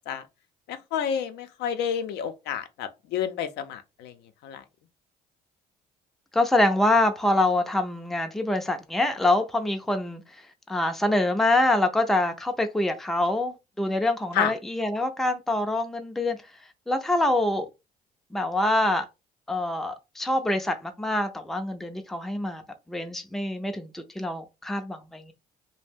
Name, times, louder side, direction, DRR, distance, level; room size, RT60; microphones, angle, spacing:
voice 1, 0.7-4.1 4.4-4.6 14.3-14.5, left 8 dB, 80° left, 0.5 m, -29 dB
voice 2, 6.3-10.2 10.7-16.4 16.9-17.7 18.3-19.1 19.5-22.6 22.9-25.3, left 1 dB, ahead, 0.4 m, -25 dB
2.5 x 2.0 x 3.4 m
cardioid pair, 110°, 17 cm